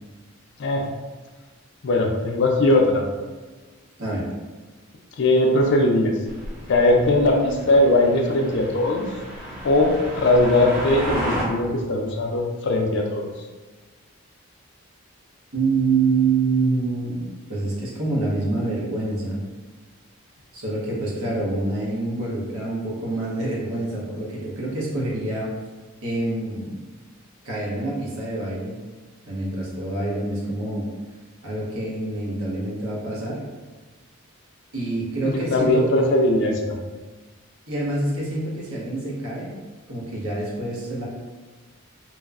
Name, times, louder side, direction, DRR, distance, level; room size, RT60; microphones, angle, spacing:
voice 1, 1.8-3.0 5.2-6.2 6.7-9.1 9.6-13.3 35.3-36.8, left 1 dB, 55° left, 1 dB, 0.4 m, -20 dB
sound 1, 6.3-11.4, equal, 10° right, 0.5 m, -33 dB
voice 2, 15.5-19.4 20.5-25.5 26.0-26.8 27.4-28.8 29.3-30.9 31.4-33.4 34.7-35.8 37.7-39.5 39.9-41.0, right 3 dB, 75° right, -5 dB, 0.8 m, -26 dB
2.9 x 2.0 x 2.3 m, 1.3 s
head